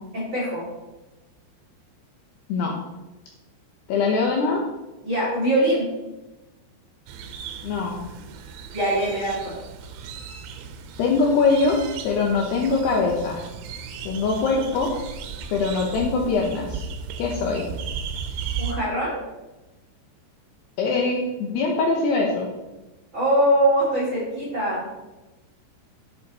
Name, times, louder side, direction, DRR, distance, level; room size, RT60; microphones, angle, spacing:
voice 1, 0.1-0.6 5.0-5.9 8.7-9.5 18.6-19.2 23.1-24.8, right 1 dB, 35° right, -6 dB, 2.2 m, -22 dB
voice 2, 3.9-4.6 7.6-8.0 11.0-11.8 12.0-13.4 14.1-14.9 15.5-16.9 17.2-17.7 20.8-22.5, left 4 dB, 75° left, 0 dB, 2.6 m, -22 dB
sound 1, 7.1-18.7, right 6 dB, 85° right, 3.3 m, -35 dB
11.0 x 6.8 x 4.1 m, 1.1 s
omnidirectional pair, 5.8 m